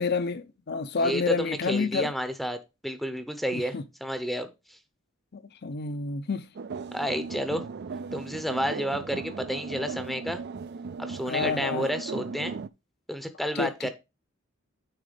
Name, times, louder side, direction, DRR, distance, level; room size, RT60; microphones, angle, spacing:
voice 1, 0.0-2.1 3.5-3.8 5.3-6.5 11.3-11.9 13.5-13.9, left 4 dB, 55° left, 0.7 m, -29 dB
voice 2, 1.0-2.6 2.8-3.7 4.0-4.5 6.9-7.6 8.1-10.4 11.0-12.5 13.1-13.9, equal, ahead, 0.7 m, -30 dB
sound 1, 6.6-12.7, right 5 dB, 55° right, 0.4 m, -37 dB
9.2 x 3.6 x 5.1 m
head